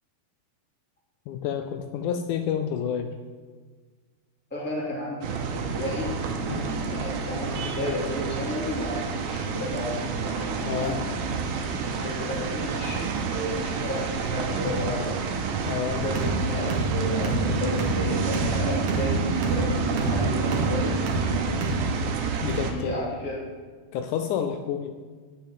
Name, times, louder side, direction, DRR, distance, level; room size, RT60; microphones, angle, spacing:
voice 1, 1.3-3.1 6.5-6.8 10.6-11.0 15.7-16.1 22.4-23.0 23.9-24.9, left 8 dB, 85° left, 7 dB, 1.7 m, -29 dB
voice 2, 4.5-11.4 11.8-15.3 16.0-20.9 22.7-23.4, left 1 dB, 5° left, -6 dB, 2.2 m, -33 dB
sound 1, 5.2-22.7, right 5 dB, 80° right, 2.8 m, -29 dB
sound 2, 15.9-21.8, right 1 dB, 55° right, 2.6 m, -28 dB
9.2 x 7.3 x 9.0 m, 1.5 s
omnidirectional pair, 4.3 m